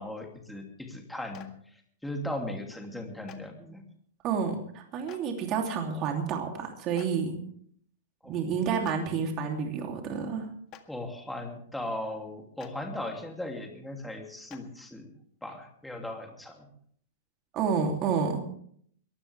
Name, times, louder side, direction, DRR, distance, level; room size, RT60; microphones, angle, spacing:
voice 1, 0.0-1.5 2.0-3.8 8.2-8.3 10.9-15.1 15.4-16.7, left 1 dB, 5° left, 2 dB, 2.8 m, -37 dB
Clapping, 1.3-1.5 3.3-3.4 5.1-5.2 7.0-7.1 8.8-9.0 10.7-10.8 12.6-12.7 14.5-14.6, left 13 dB, 35° left, 1.8 m, -47 dB
voice 2, 4.2-7.4 8.2-10.5 17.5-18.4, right 6 dB, 35° right, 2 dB, 3.0 m, -29 dB
22.0 x 15.5 x 3.5 m, 0.63 s
hypercardioid pair, 140°, 0 cm